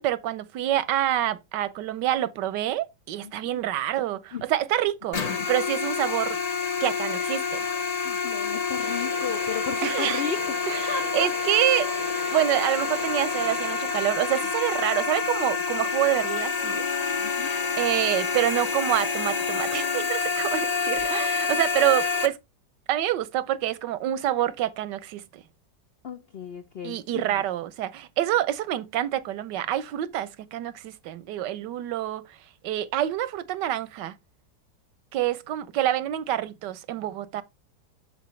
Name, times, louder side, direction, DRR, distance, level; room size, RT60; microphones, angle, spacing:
voice 1, 0.0-5.2 5.5-6.4 6.8-7.6 9.8-10.2 10.7-11.9 12.3-16.8 17.8-22.4 22.9-25.4 26.8-32.4 32.6-34.2 35.1-37.4, right 12 dB, 85° right, 1.4 m, -27 dB
voice 2, 3.2-3.6 4.3-4.4 8.0-10.5 10.9-11.3 17.2-17.6 26.0-27.4, left 7 dB, 85° left, 0.5 m, -34 dB
sound 1, 5.1-22.3, left 5 dB, 35° left, 0.7 m, -28 dB
sound 2, 8.8-14.1, right 12 dB, 70° right, 1.0 m, -40 dB
Wind instrument woodwind instrument, 16.5-20.1, left 4 dB, 55° left, 1.8 m, -39 dB
7.7 x 6.5 x 3.2 m
omnidirectional pair, 1.8 m